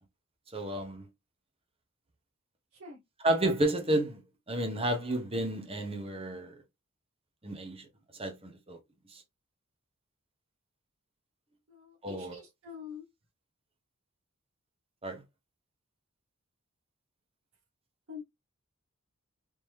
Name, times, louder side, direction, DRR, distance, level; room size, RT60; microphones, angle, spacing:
voice 1, 0.5-1.1 3.2-4.2 4.5-6.6 7.4-7.9 8.1-8.8 9.1-9.2 12.0-12.3 15.0-15.2, right 1 dB, 30° right, 1.0 m, -31 dB
voice 2, 11.7-13.0 18.1-18.2, left 6 dB, 80° right, 1.1 m, -46 dB
3.6 x 3.0 x 3.2 m
head